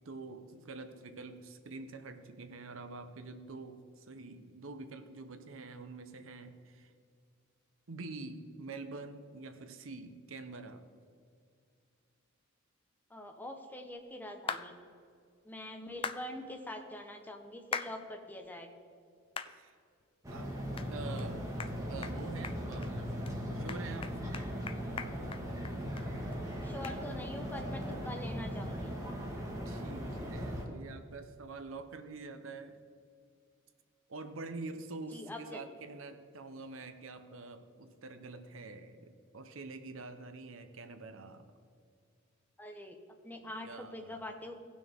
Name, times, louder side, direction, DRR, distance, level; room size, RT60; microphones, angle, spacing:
voice 1, 0.0-6.9 7.9-10.8 19.4-19.7 20.3-20.5 20.9-21.5 21.8-23.2 23.5-24.2 29.7-32.8 34.1-41.5 43.4-44.4, right 3 dB, 70° right, 8 dB, 0.8 m, -46 dB
voice 2, 13.1-14.8 15.4-18.7 26.6-28.9 35.1-35.6 42.6-43.0 43.2-44.5, left 1 dB, 10° left, 4 dB, 0.8 m, -44 dB
sound 1, 14.5-14.7 16.0-16.2 17.7-17.9 18.4-18.5 19.4-19.5 20.0-20.1 20.8-20.9 21.2-21.3 21.6-21.7 22.0-22.2 22.4-22.9 23.3-23.4 23.7-26.1 26.3-26.4 26.8-27.0, left 6 dB, 25° left, 0.4 m, -39 dB
sound 2, 20.2-30.6, equal, 15° right, 1.5 m, -38 dB
17.5 x 6.2 x 3.6 m, 2.3 s
head